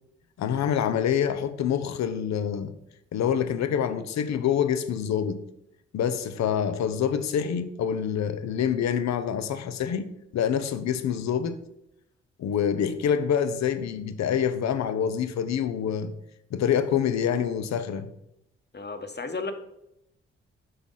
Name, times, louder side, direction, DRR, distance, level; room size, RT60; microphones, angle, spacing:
voice 1, 0.4-2.7 3.1-5.4 5.9-10.1 10.3-11.6 12.4-16.1 16.5-18.1, left 8 dB, 70° left, 0.7 m, -26 dB
voice 2, 18.7-19.5, left 3 dB, 35° left, 1.2 m, -33 dB
7.9 x 6.0 x 3.9 m
hypercardioid pair, 40°, 29 cm